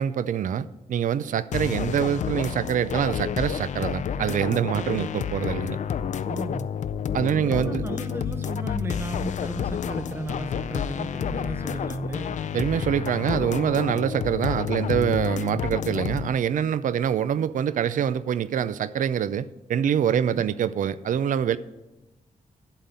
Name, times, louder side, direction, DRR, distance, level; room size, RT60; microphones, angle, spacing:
voice 1, 0.0-5.8 7.1-7.8 12.5-21.6, right 9 dB, 70° right, 16 dB, 0.4 m, -25 dB
sound 1, 1.5-16.3, left 8 dB, 60° left, 0.4 m, -30 dB
voice 2, 6.3-6.7 7.3-12.4 20.1-20.5, right 2 dB, 15° right, 8 dB, 0.6 m, -35 dB
11.5 x 4.1 x 7.8 m, 1.1 s
wide cardioid pair, 170°, 14 cm